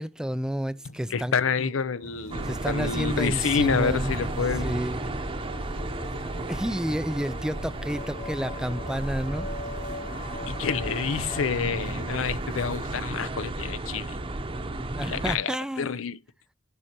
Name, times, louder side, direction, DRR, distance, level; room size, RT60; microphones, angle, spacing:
voice 1, 0.0-1.7 2.4-4.2 4.6-5.2 6.3-9.5 14.9-15.9, equal, 5° right, 0.3 m, -31 dB
voice 2, 1.1-4.8 10.5-14.2 15.0-16.2, left 6 dB, 90° left, 0.6 m, -28 dB
sound 1, 1.1-11.4, left 2 dB, 50° left, 1.4 m, -43 dB
sound 2, 2.0-13.1, right 2 dB, 70° right, 1.2 m, -45 dB
sound 3, 2.3-15.3, right 2 dB, 25° right, 0.8 m, -33 dB
11.0 x 6.4 x 2.9 m
head